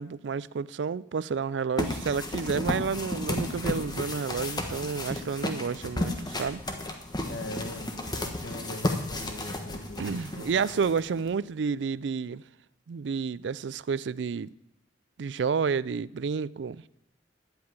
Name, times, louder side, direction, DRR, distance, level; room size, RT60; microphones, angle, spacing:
voice 1, 0.0-6.6 10.0-12.4 12.9-14.5 15.2-16.8, right 5 dB, 75° right, 0.4 m, -30 dB
sound 1, 1.8-11.3, left 1 dB, 25° left, 1.4 m, -33 dB
voice 2, 7.2-10.5 10.7-10.9, left 1 dB, 85° left, 1.6 m, -41 dB
10.5 x 8.6 x 9.5 m
head